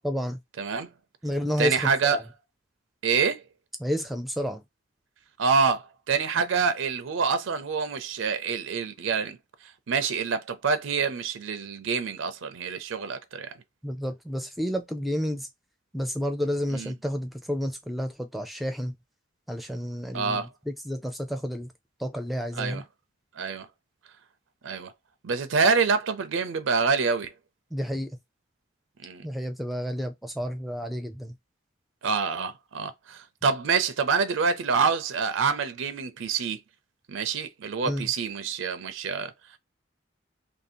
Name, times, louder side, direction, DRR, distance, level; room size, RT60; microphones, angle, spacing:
voice 1, 0.0-0.4 1.2-2.2 3.8-4.6 13.8-15.5 15.9-18.9 19.5-21.7 22.0-22.8 27.7-28.2 29.2-31.4 37.8-38.1, equal, ahead, 0.5 m, -30 dB
voice 2, 0.6-0.9 1.6-2.2 3.0-3.4 5.4-9.4 9.9-13.5 16.7-16.9 20.1-20.5 22.5-22.8 23.4-23.7 24.6-24.9 25.2-27.3 29.0-29.3 32.0-36.6 37.1-39.3, right 5 dB, 75° right, 0.5 m, -26 dB
2.9 x 2.7 x 4.2 m
head